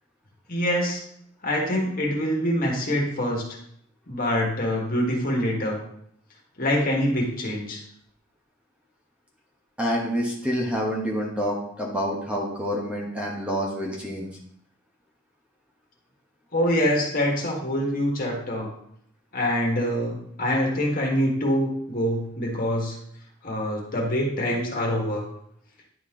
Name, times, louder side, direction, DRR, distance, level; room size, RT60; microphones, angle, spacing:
voice 1, 0.5-1.0 1.4-3.4 4.1-5.8 6.6-7.8 16.5-18.7 19.3-23.0 23.4-25.2, equal, 45° left, -1 dB, 1.7 m, -25 dB
voice 2, 9.8-14.3, equal, 5° right, -3 dB, 1.1 m, -27 dB
10.0 x 4.3 x 3.7 m, 0.70 s
head